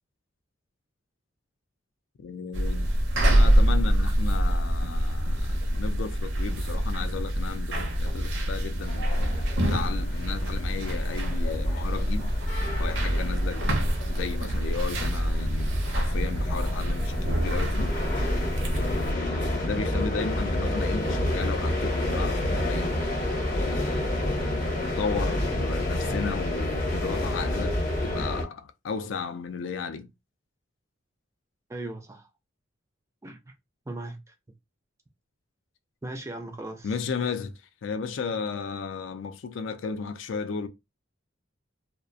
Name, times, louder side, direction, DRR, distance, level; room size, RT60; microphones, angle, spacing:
voice 1, 2.2-2.9 3.3-18.4 18.7-22.9 23.6-27.8 28.0-30.1 36.8-40.7, left 5 dB, 70° left, 0.4 m, -35 dB
sound 1, 2.5-19.1, equal, 60° right, 0.6 m, -26 dB
sound 2, 8.8-28.4, left 1 dB, 40° left, 0.7 m, -30 dB
voice 2, 31.7-32.3 33.2-33.4 33.9-34.3 36.0-36.9, right 2 dB, 15° right, 0.3 m, -38 dB
2.3 x 2.0 x 2.5 m
head